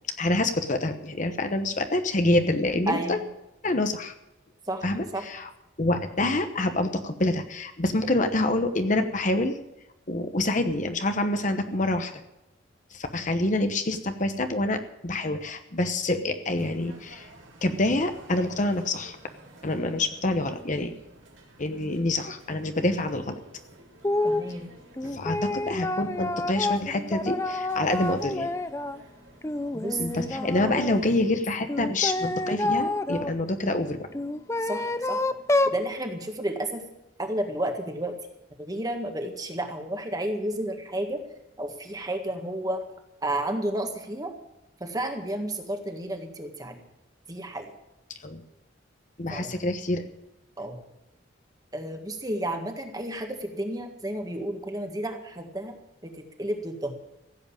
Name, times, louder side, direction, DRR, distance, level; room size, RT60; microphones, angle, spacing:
voice 1, 0.2-3.2 3.6-4.1 4.8-5.5 5.8-9.6 10.1-12.1 12.9-17.3 17.6-19.2 19.6-20.9 21.6-23.4 25.1-28.5 30.0-34.1 48.2-48.4 49.2-50.1, left 2 dB, 40° left, 8 dB, 1.0 m, -26 dB
voice 2, 2.9-3.2 4.7-4.8 5.1-5.2 22.8-23.0 24.2-24.7 29.7-30.7 34.6-35.2 35.6-36.9 37.2-38.2 38.6-41.2 41.6-42.8 43.2-44.3 44.8-46.8 47.3-47.7 49.3-49.5 50.6-50.8 51.7-55.8 56.0-56.9, right 1 dB, 20° right, 4 dB, 1.7 m, -32 dB
sound 1, 16.5-31.3, right 2 dB, 75° right, 3.5 m, -51 dB
sound 2, 24.0-24.5 25.0-29.0 29.4-31.0 31.7-33.3 34.1-35.8, left 2 dB, 15° left, 0.5 m, -28 dB
16.0 x 8.1 x 8.9 m, 0.92 s
head